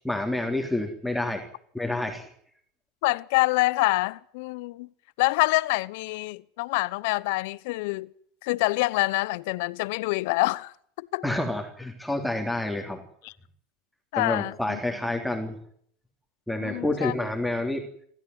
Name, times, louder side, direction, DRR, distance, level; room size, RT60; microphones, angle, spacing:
voice 1, 0.0-1.5 1.7-2.3 11.2-13.0 14.1-15.6 16.5-17.9, left 1 dB, ahead, 3.4 m, -28 dB
voice 2, 3.0-4.9 5.2-8.1 8.4-11.2 13.2-13.3 14.1-14.8 16.6-17.1, left 22 dB, 65° left, 0.9 m, -26 dB
26.5 x 14.5 x 9.6 m
hypercardioid pair, 90°, 0 cm